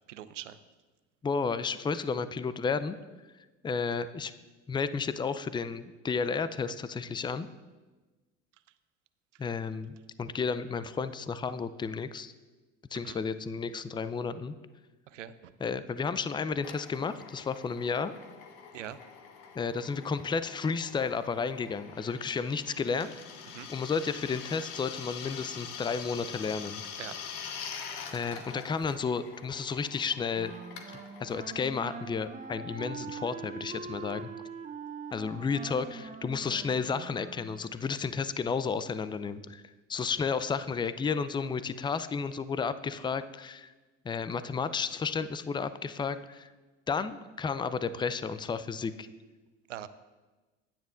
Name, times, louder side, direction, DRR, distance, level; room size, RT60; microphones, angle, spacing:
voice 1, 0.1-0.6 13.0-13.2 15.1-15.5 18.7-19.0 23.5-23.7 27.0-27.2 49.7-49.9, right 11 dB, 80° right, 14 dB, 0.6 m, -42 dB
voice 2, 1.2-3.0 3.6-4.3 4.7-7.5 9.4-12.3 12.9-14.5 15.6-18.1 19.5-23.1 23.7-26.8 28.1-30.5 31.2-34.3 35.1-39.6 39.9-43.7 44.0-46.5 46.9-49.1, left 5 dB, 15° left, 13 dB, 0.5 m, -32 dB
Drill, 16.6-33.0, left 7 dB, 60° left, 1.3 m, -45 dB
Wind instrument woodwind instrument, 30.4-37.7, right 5 dB, 20° right, 0.8 m, -43 dB
16.0 x 10.0 x 2.5 m, 1.2 s
figure-of-eight pair, 60°, 36 cm